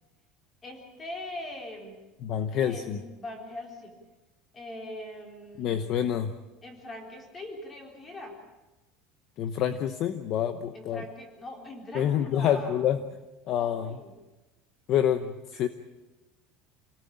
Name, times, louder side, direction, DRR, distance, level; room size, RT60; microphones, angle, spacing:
voice 1, 0.6-2.0 2.6-3.9 4.5-5.9 6.6-8.4 10.7-12.8 13.5-14.1, left 1 dB, 15° left, 3 dB, 3.9 m, -41 dB
voice 2, 2.2-3.0 5.6-6.3 9.4-11.0 11.9-13.0 13.5-14.0 14.9-15.7, left 9 dB, 40° left, 11 dB, 0.9 m, -27 dB
27.5 x 18.0 x 8.7 m, 1.1 s
cardioid pair, 175°, 0 cm